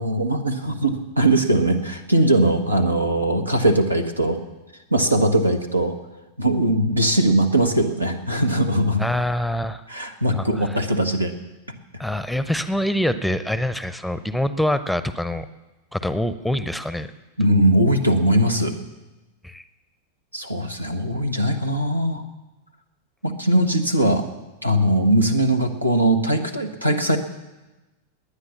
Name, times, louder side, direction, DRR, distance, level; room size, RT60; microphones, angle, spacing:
voice 1, 0.0-4.4 4.9-6.0 6.4-9.0 9.9-11.3 17.4-18.7 20.3-22.2 23.2-24.3 24.6-27.2, right 1 dB, 85° right, 5 dB, 1.4 m, -20 dB
voice 2, 9.0-9.8 10.3-10.8 12.0-15.5 15.9-17.1 19.4-19.6, left 1 dB, ahead, 12 dB, 0.7 m, -25 dB
19.5 x 9.8 x 7.1 m, 1.1 s
figure-of-eight pair, 90°, 0 cm